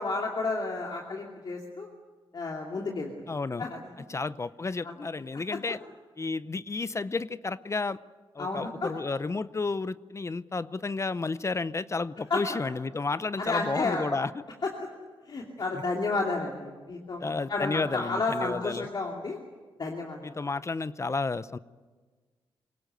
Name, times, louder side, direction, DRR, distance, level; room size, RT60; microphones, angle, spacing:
voice 1, 0.0-1.9 2.3-3.1 3.6-3.8 4.8-4.9 5.5-5.6 8.4-8.9 12.3-12.6 13.4-14.1 14.6-14.9 15.3-19.4 19.8-20.3, left 3 dB, 50° left, 0 dB, 2.7 m, -31 dB
voice 2, 3.3-3.7 4.1-5.8 6.2-8.0 8.3-14.4 15.7-15.8 17.2-18.9 20.2-21.6, left 3 dB, 30° left, 16 dB, 0.7 m, -32 dB
23.0 x 18.5 x 9.3 m, 1.4 s
cardioid pair, 70°, 10 cm